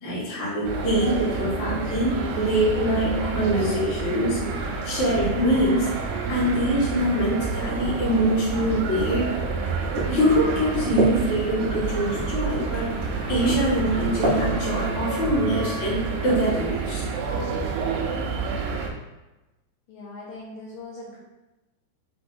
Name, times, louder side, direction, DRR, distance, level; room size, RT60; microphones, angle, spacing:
voice 1, 0.0-4.4 4.8-5.9 6.3-9.2 10.1-12.9 13.3-17.1, equal, 50° left, -8 dB, 1.9 m, -24 dB
sound 1, 0.6-18.9, right 5 dB, 85° right, 2.4 m, -29 dB
sound 2, 4.0-15.0, right 1 dB, 60° right, 2.3 m, -31 dB
voice 2, 19.9-21.2, left 2 dB, 75° left, -6 dB, 2.2 m, -40 dB
6.0 x 3.4 x 2.6 m, 1.0 s
omnidirectional pair, 4.5 m